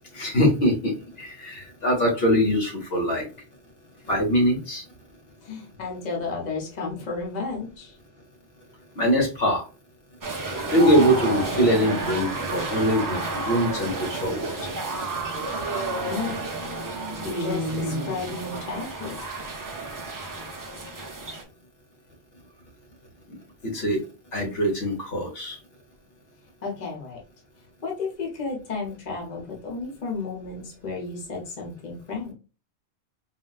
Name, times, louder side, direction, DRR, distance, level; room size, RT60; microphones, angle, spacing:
voice 1, 0.1-3.3 4.1-4.8 9.0-9.6 10.7-14.5 23.6-24.0 24.3-25.6, equal, 65° left, 0 dB, 1.2 m, -23 dB
voice 2, 5.4-8.0 10.8-11.1 16.0-16.5 17.2-19.2 26.6-27.2 27.8-32.3, left 4 dB, 45° left, -1 dB, 1.0 m, -33 dB
sound 1, 10.2-21.4, right 2 dB, 35° right, 0.3 m, -31 dB
4.0 x 2.2 x 2.3 m, 0.33 s
omnidirectional pair, 1.1 m